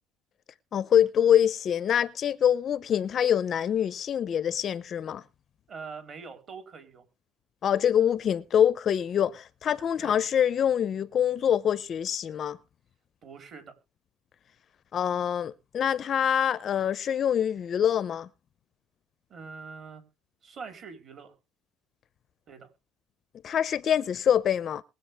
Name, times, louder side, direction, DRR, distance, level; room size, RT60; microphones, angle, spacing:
voice 1, 0.7-5.2 7.6-12.6 14.9-18.3 23.4-24.8, left 9 dB, 35° left, 0.6 m, -25 dB
voice 2, 5.7-7.0 10.0-10.2 13.2-13.7 19.3-20.0 20.4-21.3 22.5-22.7, right 5 dB, 40° right, 4.0 m, -43 dB
22.5 x 7.9 x 3.4 m
cardioid pair, 145°, 0 cm